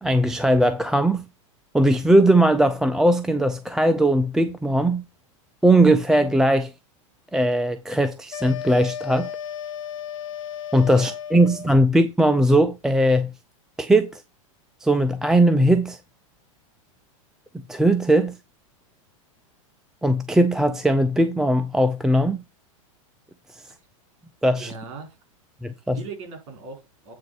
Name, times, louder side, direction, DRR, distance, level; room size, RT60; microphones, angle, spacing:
voice 1, 0.0-1.3 1.7-5.0 5.6-6.7 7.3-9.3 10.7-13.3 13.8-14.2 14.8-16.0 17.7-18.4 20.0-22.4 23.5-23.6 24.4-24.7 25.6-26.0, right 1 dB, 5° right, 0.4 m, -19 dB
sound 1, 8.3-11.8, left 8 dB, 70° left, 0.9 m, -34 dB
voice 2, 24.6-25.2 25.9-27.1, right 4 dB, 55° right, 4.7 m, -38 dB
8.5 x 3.8 x 6.8 m
supercardioid pair, 145°, 17 cm